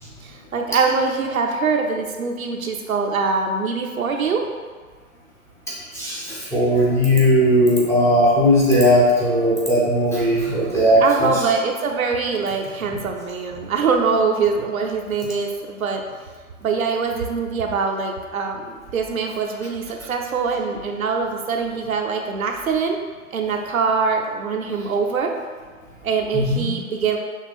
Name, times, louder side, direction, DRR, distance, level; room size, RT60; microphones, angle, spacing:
voice 1, 0.2-4.4 11.0-16.0 16.6-23.0 23.3-25.3 26.0-27.2, right 5 dB, 80° right, 2 dB, 0.7 m, -23 dB
voice 2, 5.7-11.3 26.3-26.7, equal, 5° left, -6 dB, 0.7 m, -17 dB
6.2 x 2.4 x 3.4 m, 1.5 s
figure-of-eight pair, 120°, 41 cm